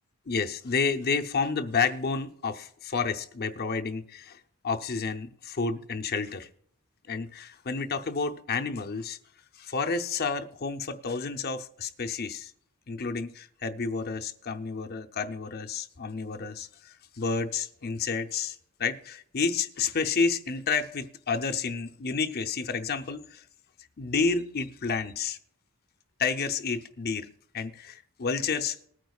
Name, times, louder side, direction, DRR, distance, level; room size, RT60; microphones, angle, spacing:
voice 1, 0.3-6.5 7.1-9.2 9.6-12.5 12.9-23.4 24.0-25.4 26.2-27.3 27.5-28.9, left 5 dB, 45° left, 0.6 m, -30 dB
20.0 x 9.3 x 2.4 m
head